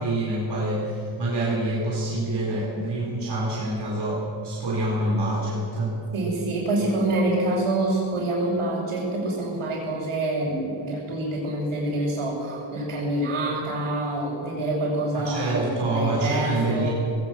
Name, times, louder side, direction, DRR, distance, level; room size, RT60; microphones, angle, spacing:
voice 1, 0.0-6.0 15.1-16.9, right 1 dB, 55° right, -4 dB, 4.2 m, -26 dB
voice 2, 6.1-16.9, right 1 dB, 80° right, -8 dB, 5.9 m, -26 dB
19.5 x 18.0 x 7.7 m, 2.7 s
wide cardioid pair, 175°, 49 cm